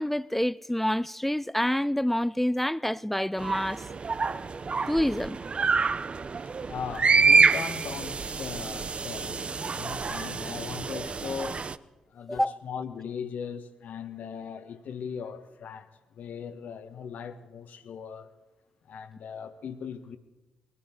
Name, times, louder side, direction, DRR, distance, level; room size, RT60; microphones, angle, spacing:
voice 1, 0.0-3.8 4.9-5.4 12.3-12.6, left 1 dB, 5° left, 0.4 m, -27 dB
sound 1, 3.4-11.8, right 5 dB, 40° right, 0.6 m, -27 dB
voice 2, 6.6-11.7 12.1-18.3 18.9-20.2, left 7 dB, 60° left, 1.3 m, -39 dB
21.5 x 14.0 x 4.4 m
hypercardioid pair, 40°, 3 cm